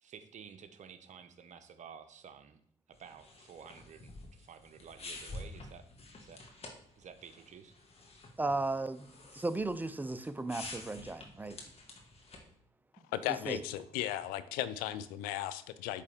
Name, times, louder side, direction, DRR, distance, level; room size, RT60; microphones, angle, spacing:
voice 1, 0.0-2.6 2.9-5.9 6.2-7.8, right 7 dB, 55° right, 0.8 m, -52 dB
sound 1, 2.9-12.5, left 2 dB, 40° left, 1.6 m, -50 dB
voice 2, 8.4-9.1 9.3-11.6 13.3-13.6, right 2 dB, 10° right, 0.5 m, -35 dB
voice 3, 13.1-16.0, left 13 dB, 80° left, 0.4 m, -36 dB
8.3 x 3.3 x 3.5 m
hypercardioid pair, 55°, 15 cm